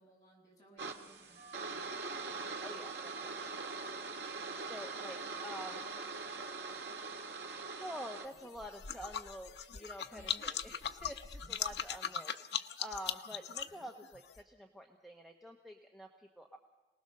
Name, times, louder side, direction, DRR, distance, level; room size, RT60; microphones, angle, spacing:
voice 1, 0.0-1.9 10.1-10.4, right 1 dB, 20° left, -4 dB, 7.4 m, -61 dB
sound 1, 0.8-8.3, right 4 dB, 85° right, 1.8 m, -42 dB
sound 2, 1.3-10.4, right 1 dB, 60° right, 4.7 m, -60 dB
voice 2, 2.6-3.7 4.0-4.1 4.5-5.9 7.7-12.3 12.8-16.6, equal, ahead, 2 dB, 1.0 m, -48 dB
sound 3, 8.3-14.4, left 8 dB, 80° left, 0.7 m, -40 dB
26.5 x 19.0 x 6.6 m, 1.1 s
head